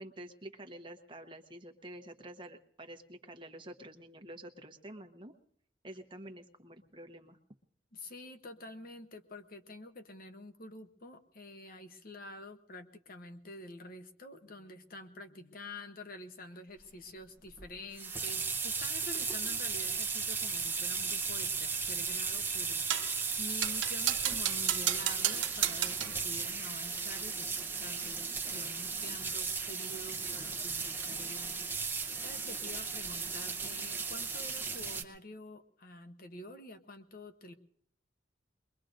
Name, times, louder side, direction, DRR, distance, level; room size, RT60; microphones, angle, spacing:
voice 1, 0.0-5.3 5.8-7.4, right 1 dB, 25° right, 5 dB, 1.1 m, -48 dB
voice 2, 7.9-37.5, left 2 dB, 55° left, 8 dB, 0.9 m, -48 dB
sound 1, 17.6-35.0, right 5 dB, 10° right, 0.8 m, -36 dB
sound 2, 22.9-23.2 23.6-26.2, right 12 dB, 90° right, 0.6 m, -33 dB
22.5 x 22.0 x 2.6 m, 0.66 s
head